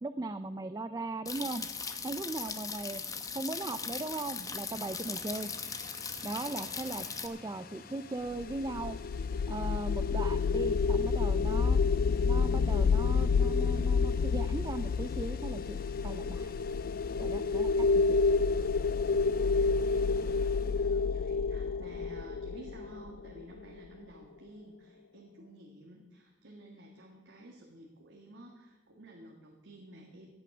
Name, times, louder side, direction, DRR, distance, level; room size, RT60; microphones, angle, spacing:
voice 1, 0.0-3.0 3.3-5.5 6.2-9.0 9.5-11.8 12.2-16.5 17.2-18.2, right 2 dB, 20° right, 12 dB, 0.3 m, -38 dB
sound 1, 1.3-7.3, left 5 dB, 20° left, 0.8 m, -39 dB
sound 2, 3.6-21.8, left 4 dB, 50° left, 0.8 m, -51 dB
sound 3, 8.4-23.6, left 4 dB, 70° left, 0.3 m, -29 dB
voice 2, 20.4-30.3, right 1 dB, 80° right, 0 dB, 1.8 m, -52 dB
16.0 x 9.2 x 6.0 m, 1.3 s
head